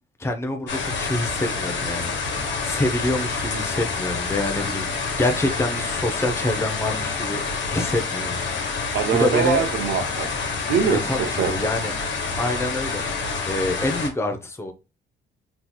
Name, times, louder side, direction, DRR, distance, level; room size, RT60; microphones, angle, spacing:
voice 1, 0.2-7.4 7.7-9.6 11.0-11.9 12.4-14.7, left 1 dB, 15° left, 0.7 m, -27 dB
sound 1, 0.7-14.1, left 4 dB, 65° left, 1.3 m, -27 dB
voice 2, 8.9-10.4 10.7-11.5, right 7 dB, 70° right, 0.7 m, -23 dB
3.7 x 3.0 x 2.2 m
cardioid pair, 90°, 20 cm